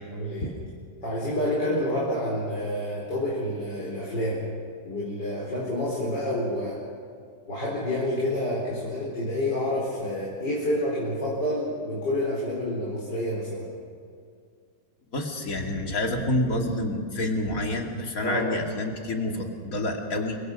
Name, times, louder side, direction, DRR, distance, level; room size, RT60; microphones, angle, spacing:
voice 1, 0.1-0.5 1.0-4.4 4.8-6.8 7.5-13.7 18.2-18.5, left 1 dB, 75° left, -5 dB, 5.0 m, -28 dB
voice 2, 15.1-20.4, left 1 dB, 50° left, 1 dB, 2.9 m, -28 dB
27.5 x 24.0 x 5.4 m, 2.2 s
omnidirectional pair, 1.9 m